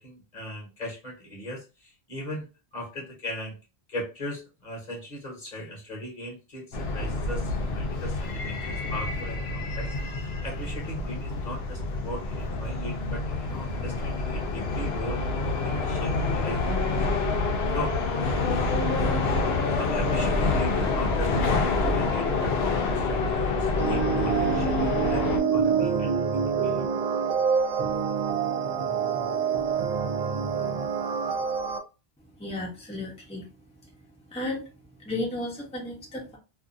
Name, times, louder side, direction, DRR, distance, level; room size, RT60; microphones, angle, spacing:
voice 1, 0.0-2.5 2.7-3.6 3.9-9.9 10.2-15.2 15.6-16.6 17.0-17.1 17.6-18.0 19.7-25.2 25.5-27.0, left 1 dB, 45° left, -1 dB, 1.1 m, -38 dB
sound 1, 6.7-25.4, left 3 dB, 75° left, 0.9 m, -27 dB
sound 2, 23.8-31.8, right 6 dB, 50° right, 0.6 m, -26 dB
voice 2, 32.4-33.5 34.3-34.7 35.0-36.4, left 2 dB, 5° left, -3 dB, 0.7 m, -33 dB
2.6 x 2.4 x 2.5 m, 0.30 s
omnidirectional pair, 1.0 m